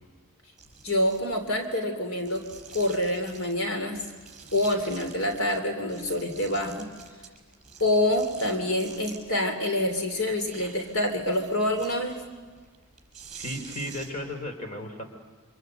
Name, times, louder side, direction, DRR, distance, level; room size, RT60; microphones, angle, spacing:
sound 1, 0.6-1.6 2.2-3.6 3.9-5.6 5.9-9.4 9.8-14.3, right 6 dB, 30° right, 5.2 m, -48 dB
voice 1, 0.8-2.4 2.7-4.0 4.5-6.9 7.8-12.2, left 1 dB, 75° left, 5 dB, 3.1 m, -26 dB
voice 2, 13.4-15.0, left 1 dB, 35° left, 5 dB, 3.8 m, -35 dB
28.0 x 26.0 x 8.0 m, 1.5 s
head